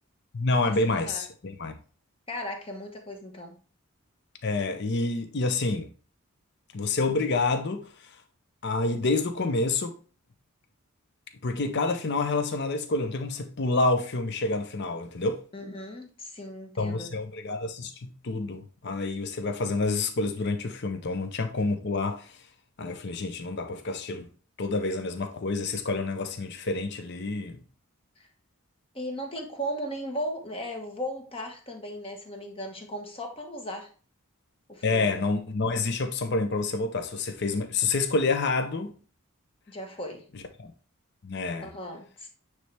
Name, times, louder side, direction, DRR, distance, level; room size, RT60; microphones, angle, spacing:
voice 1, 0.3-1.8 4.4-5.9 6.7-8.2 8.6-10.0 11.4-15.4 16.8-22.4 22.8-24.3 24.6-27.6 34.8-39.0 40.6-40.7 41.2-41.7, left 3 dB, 50° left, 0.6 m, -28 dB
voice 2, 2.3-3.6 15.5-17.1 28.2-28.3 28.9-33.9 34.7-35.2 39.7-40.2 41.6-42.3, equal, 25° left, 1.2 m, -36 dB
9.3 x 3.3 x 3.3 m
head